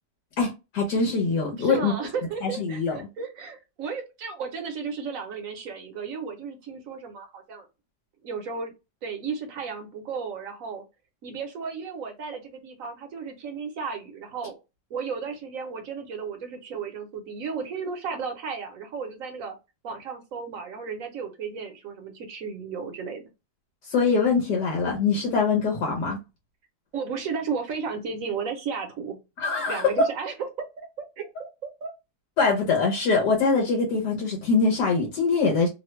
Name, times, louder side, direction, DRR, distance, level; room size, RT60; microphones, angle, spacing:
voice 1, 0.4-1.9 2.4-3.0 23.8-26.2 29.4-30.0 32.4-35.7, left 4 dB, 80° left, 1.4 m, -23 dB
voice 2, 1.6-7.7 8.2-8.7 9.0-10.8 11.2-14.6 14.9-19.6 19.8-23.2 26.9-29.2 29.6-30.9 31.2-31.9, right 5 dB, 60° right, 1.0 m, -34 dB
3.1 x 2.2 x 3.0 m
omnidirectional pair, 1.8 m